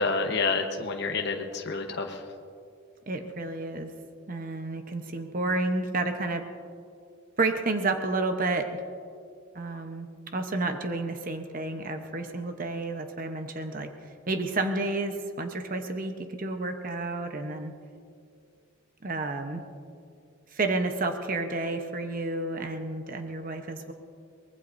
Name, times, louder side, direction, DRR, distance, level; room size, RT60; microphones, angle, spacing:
voice 1, 0.0-2.2, left 3 dB, 50° left, 3 dB, 1.0 m, -28 dB
voice 2, 3.1-3.9 4.3-6.5 7.4-8.8 9.5-13.9 14.3-17.7 19.0-19.6 20.5-23.9, right 2 dB, 40° right, 6 dB, 0.9 m, -30 dB
23.5 x 19.5 x 2.6 m, 2.3 s
head